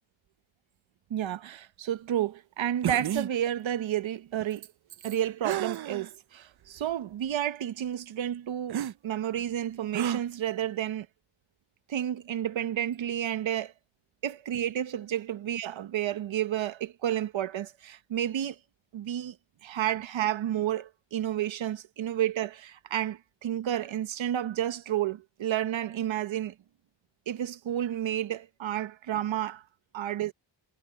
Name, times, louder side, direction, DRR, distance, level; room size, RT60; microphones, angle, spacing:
voice 1, 1.1-4.7 5.0-11.1 11.9-13.7 14.2-18.6 18.9-19.4 19.6-26.5 27.3-29.6 29.9-30.3, right 11 dB, 85° right, 0.8 m, -31 dB
sound 1, 2.8-3.3 5.4-6.1 6.8-6.9 8.7-8.9 9.9-10.2, right 10 dB, 60° right, 0.6 m, -30 dB
wide cardioid pair, 160°, 45 cm